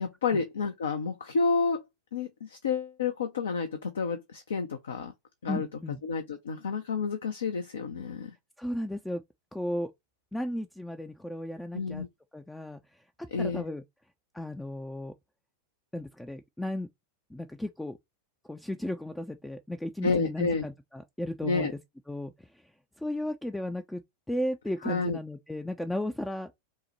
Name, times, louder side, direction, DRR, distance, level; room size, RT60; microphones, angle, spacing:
voice 1, 0.0-1.8 2.1-5.1 5.4-5.7 6.0-8.3 11.7-12.1 13.3-13.6 20.0-20.6 21.4-21.7 24.8-25.2, left 4 dB, 65° left, 0.5 m, -30 dB
voice 2, 5.5-6.0 8.6-9.2 9.5-9.9 10.3-12.0 12.3-13.0 13.4-13.8 14.3-15.1 15.9-16.9 17.3-18.0 18.5-21.7 22.1-22.6 23.0-24.0 24.3-26.5, left 1 dB, 5° left, 0.3 m, -35 dB
5.5 x 2.1 x 3.0 m
figure-of-eight pair, 90°, 0 cm